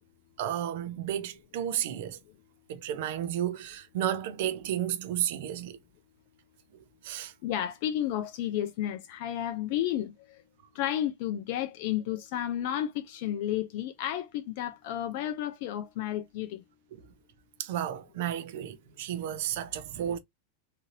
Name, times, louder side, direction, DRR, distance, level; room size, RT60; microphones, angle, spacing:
voice 1, 0.4-2.2 2.7-5.8 7.0-7.3 16.9-17.0 17.6-20.2, right 11 dB, 50° right, 0.6 m, -32 dB
voice 2, 7.4-10.1 10.7-16.6, left 11 dB, 50° left, 0.4 m, -32 dB
3.7 x 2.7 x 2.6 m
figure-of-eight pair, 90°, 0 cm